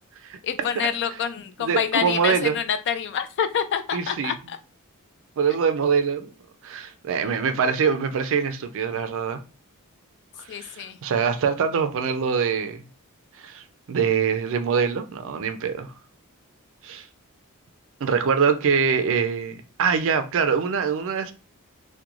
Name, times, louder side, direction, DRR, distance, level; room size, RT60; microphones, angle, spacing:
voice 1, 0.4-4.6 10.5-11.0, left 8 dB, 55° left, 0.4 m, -27 dB
voice 2, 1.6-2.6 3.9-4.3 5.4-6.3 6.6-9.4 10.4-12.8 13.4-15.9 16.8-17.0 18.0-21.3, right 6 dB, 65° right, 0.4 m, -24 dB
2.9 x 2.2 x 2.4 m
head